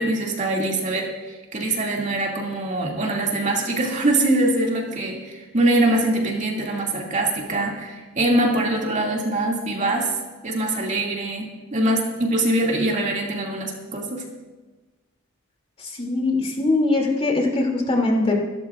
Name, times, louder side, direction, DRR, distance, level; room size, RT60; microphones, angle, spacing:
voice 1, 0.0-10.1 10.4-14.3, right 1 dB, 35° right, -1 dB, 2.4 m, -23 dB
voice 2, 16.0-18.3, left 2 dB, 30° left, 0 dB, 2.8 m, -21 dB
28.0 x 13.5 x 2.5 m, 1.2 s
head